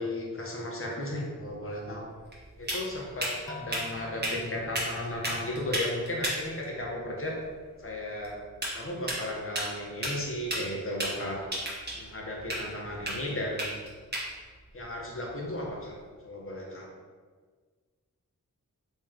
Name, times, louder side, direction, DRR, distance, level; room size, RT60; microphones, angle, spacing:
voice 1, 0.0-2.0 2.6-7.4 7.8-8.4 8.7-11.5 11.9-13.7 14.7-15.9 16.2-16.9, left 1 dB, 40° left, -2 dB, 0.9 m, -35 dB
sound 1, 1.4-16.1, right 1 dB, 30° right, 1.1 m, -37 dB
sound 2, 3.5-6.4, left 4 dB, 10° left, 0.3 m, -50 dB
3.1 x 3.0 x 3.7 m, 1.5 s
wide cardioid pair, 65°, 33 cm